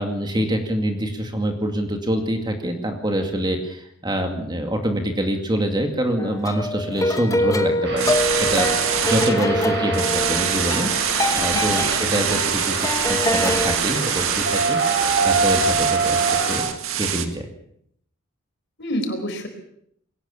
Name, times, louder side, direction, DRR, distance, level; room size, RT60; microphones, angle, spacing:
voice 1, 0.0-16.7 17.0-17.5, right 1 dB, 20° right, 4 dB, 2.3 m, -25 dB
sound 1, 6.2-13.8, left 1 dB, 15° left, 1.1 m, -24 dB
sound 2, 7.8-16.6, right 3 dB, 55° right, 7.1 m, -25 dB
sound 3, 8.0-9.3 9.9-17.3, right 9 dB, 75° right, 2.0 m, -25 dB
voice 2, 9.3-9.6 18.8-19.5, equal, 55° left, 6 dB, 4.4 m, -28 dB
22.0 x 18.5 x 7.2 m, 0.71 s
head